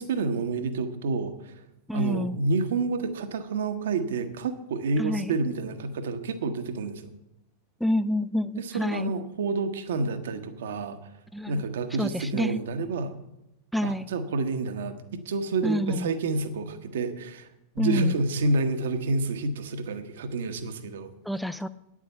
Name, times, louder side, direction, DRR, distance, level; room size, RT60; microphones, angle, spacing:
voice 1, 0.0-1.6 1.9-7.1 8.6-11.1 11.5-13.1 13.8-17.5 17.7-21.1, right 3 dB, 60° right, 9 dB, 1.0 m, -29 dB
voice 2, 1.9-2.4 5.0-5.3 7.8-9.1 11.3-11.5 12.0-12.6 13.7-14.1 15.6-16.1 17.8-18.1 21.3-21.7, equal, ahead, 13 dB, 0.4 m, -28 dB
9.5 x 7.4 x 8.0 m, 0.90 s
figure-of-eight pair, 90°, 0 cm